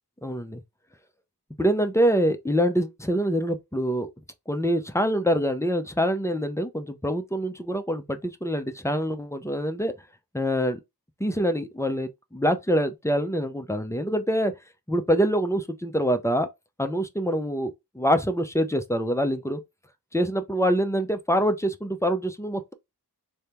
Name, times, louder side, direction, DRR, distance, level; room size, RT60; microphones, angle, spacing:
voice 1, 0.2-0.6 1.6-4.1 4.5-9.9 10.3-10.8 11.2-14.5 14.9-16.5 16.8-19.6 20.1-22.7, equal, 5° left, 0.5 m, -25 dB
3.5 x 2.2 x 4.3 m
wide cardioid pair, 65°, 41 cm